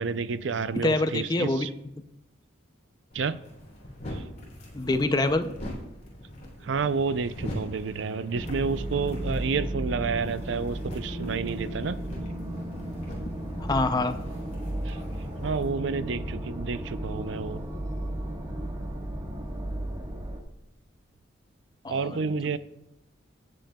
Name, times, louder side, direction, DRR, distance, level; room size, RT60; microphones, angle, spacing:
voice 1, 0.0-1.7 3.1-3.4 4.1-4.2 6.6-12.0 14.9-15.0 15.4-17.6 21.9-22.6, right 5 dB, 70° right, 14 dB, 0.5 m, -30 dB
voice 2, 0.8-1.7 4.7-5.5 13.5-14.2 21.8-22.2, left 2 dB, 20° left, 9 dB, 0.5 m, -25 dB
sound 1, 3.1-15.7, equal, 40° left, 3.2 m, -42 dB
sound 2, 8.3-20.4, right 1 dB, 25° right, 1.3 m, -34 dB
17.5 x 7.6 x 2.3 m, 0.89 s
head